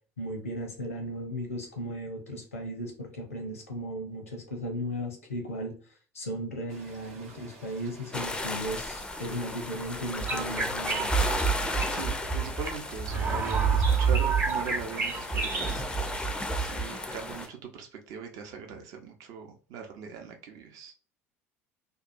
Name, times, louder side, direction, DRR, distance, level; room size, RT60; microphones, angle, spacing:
voice 1, 0.2-11.2, equal, 85° left, 3 dB, 0.7 m, -36 dB
sound 1, 6.7-17.5, right 3 dB, 75° right, 1.0 m, -51 dB
sound 2, 8.1-17.5, left 2 dB, 10° left, 0.4 m, -35 dB
sound 3, 10.2-16.9, right 5 dB, 30° right, 0.9 m, -28 dB
voice 2, 11.9-15.9 16.6-20.9, right 7 dB, 55° right, 4 dB, 0.7 m, -40 dB
2.7 x 2.2 x 2.5 m, 0.39 s
figure-of-eight pair, 65°, 7 cm